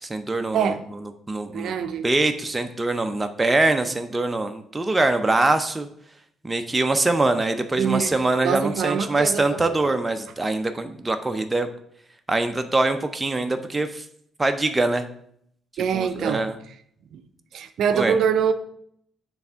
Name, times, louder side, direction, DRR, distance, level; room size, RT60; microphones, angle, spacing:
voice 1, 0.0-0.7 1.3-1.7 2.0-5.9 6.4-11.7 12.3-14.0 14.4-15.1 15.9-16.5 17.9-18.1, right 2 dB, 15° right, 7 dB, 0.5 m, -23 dB
voice 2, 1.5-2.1 7.8-8.2 8.4-9.6 15.8-16.4 17.1-17.2 17.5-18.5, right 7 dB, 70° right, 9 dB, 0.5 m, -24 dB
7.0 x 3.4 x 5.5 m, 0.68 s
cardioid pair, 90°, 0 cm